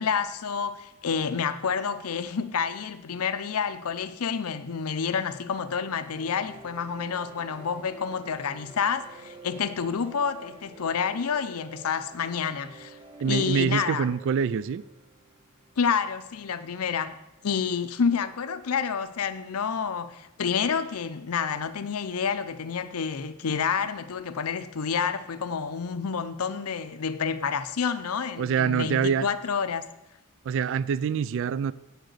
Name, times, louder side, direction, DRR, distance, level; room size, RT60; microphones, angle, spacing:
voice 1, 0.0-13.0 13.2-14.1 15.8-17.2 17.4-29.8, left 6 dB, 85° left, 0.6 m, -29 dB
sound 1, 6.2-18.3, right 2 dB, 25° right, 1.0 m, -50 dB
voice 2, 13.2-14.8 28.4-29.3 30.5-31.7, right 7 dB, 60° right, 0.3 m, -25 dB
8.9 x 6.4 x 6.6 m
head